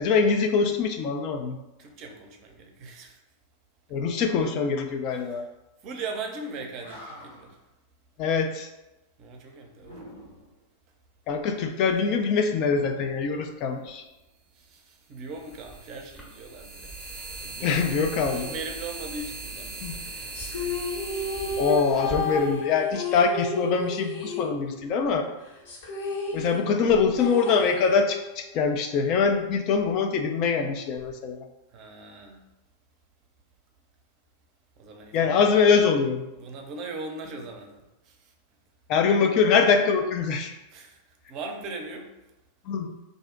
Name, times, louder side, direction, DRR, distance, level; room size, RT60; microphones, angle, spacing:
voice 1, 0.0-1.6 3.9-5.4 8.2-8.7 11.3-14.0 17.6-18.5 19.8-20.0 21.6-25.2 26.3-31.5 35.1-36.2 38.9-40.5 42.7-42.9, left 5 dB, 40° left, 4 dB, 0.3 m, -23 dB
voice 2, 1.8-3.2 5.1-5.4 5.8-7.6 9.2-10.1 14.6-16.9 17.3-17.7 18.3-20.9 31.7-32.4 34.8-35.5 36.4-38.3 40.7-41.0 41.3-42.1, right 3 dB, 40° right, 3 dB, 0.5 m, -39 dB
Animal, 6.5-6.6 6.8-7.6 9.8-10.6 12.6-14.0, equal, 85° left, 0.9 m, -46 dB
sound 1, 13.9-14.0 15.3-23.3, right 3 dB, 5° left, 0.7 m, -39 dB
sound 2, 20.3-25.0 25.3-25.4 25.7-28.3, left 3 dB, 60° left, 0.8 m, -32 dB
2.5 x 2.0 x 3.6 m, 0.97 s
figure-of-eight pair, 90°, 0 cm